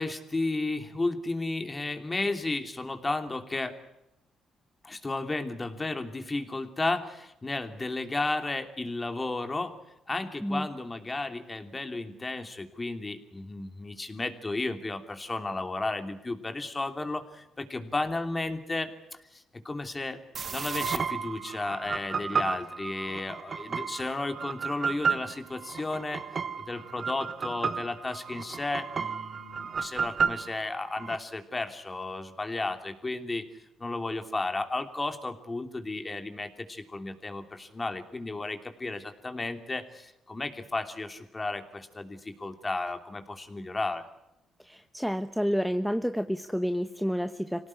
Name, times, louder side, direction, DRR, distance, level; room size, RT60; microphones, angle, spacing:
voice 1, 0.0-3.8 4.8-9.8 10.1-20.2 20.5-26.2 26.6-33.5 33.8-44.1, left 2 dB, 25° left, 7 dB, 2.9 m, -33 dB
sound 1, 20.3-31.2, right 6 dB, 45° right, 1.3 m, -33 dB
voice 2, 44.6-47.7, equal, ahead, 8 dB, 1.0 m, -29 dB
26.0 x 17.5 x 9.9 m, 0.89 s
cardioid pair, 90°, 0 cm